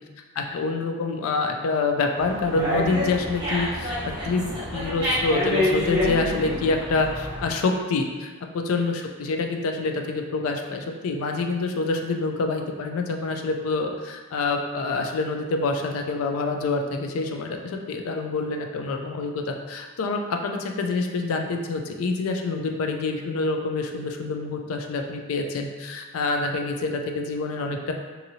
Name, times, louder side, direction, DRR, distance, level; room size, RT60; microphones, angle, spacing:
voice 1, 0.4-3.9 4.2-27.9, left 3 dB, 70° left, 4 dB, 0.3 m, -27 dB
Dog, 2.2-7.5, left 1 dB, 20° right, 0.7 m, -27 dB
2.8 x 2.6 x 2.7 m, 1.4 s
head